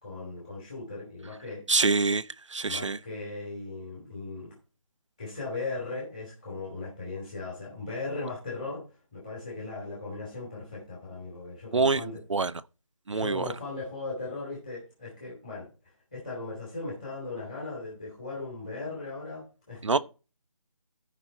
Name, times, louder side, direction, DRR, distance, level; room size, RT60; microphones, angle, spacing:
voice 1, 0.0-1.6 2.6-4.5 5.2-8.9 9.1-12.2 13.1-15.7 16.1-20.0, left 3 dB, 15° left, 2.7 m, -38 dB
voice 2, 1.7-3.0 11.7-12.0 12.3-12.5 13.1-13.4 19.8-20.0, right 4 dB, 60° right, 0.6 m, -25 dB
14.5 x 5.1 x 4.3 m
figure-of-eight pair, 180°, 18 cm